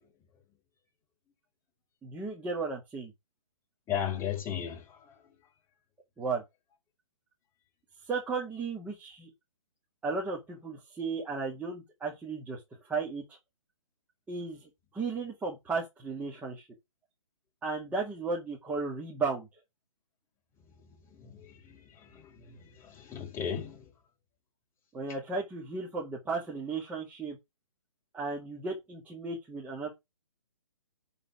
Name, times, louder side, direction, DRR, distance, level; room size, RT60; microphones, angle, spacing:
voice 1, 2.0-3.1 6.2-6.4 8.1-9.3 10.0-12.6 12.9-13.4 14.3-16.7 17.6-19.5 24.9-27.4 28.1-29.9, right 4 dB, 10° right, 2.1 m, -35 dB
voice 2, 3.9-5.1 21.1-23.8, left 9 dB, 15° left, 5.1 m, -36 dB
11.0 x 4.2 x 6.1 m
figure-of-eight pair, 135°, 17 cm